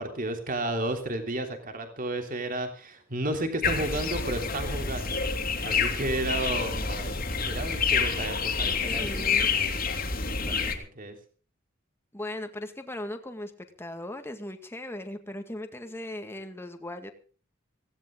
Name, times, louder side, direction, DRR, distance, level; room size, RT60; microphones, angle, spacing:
voice 1, 0.0-5.3 5.6-11.2, right 1 dB, 45° right, 5 dB, 3.2 m, -33 dB
sound 1, 3.6-10.7, left 5 dB, 45° left, 2.8 m, -28 dB
voice 2, 8.8-9.9 12.1-13.5 13.8-17.1, left 1 dB, 10° left, 6 dB, 1.9 m, -38 dB
18.0 x 17.0 x 3.8 m, 0.38 s
head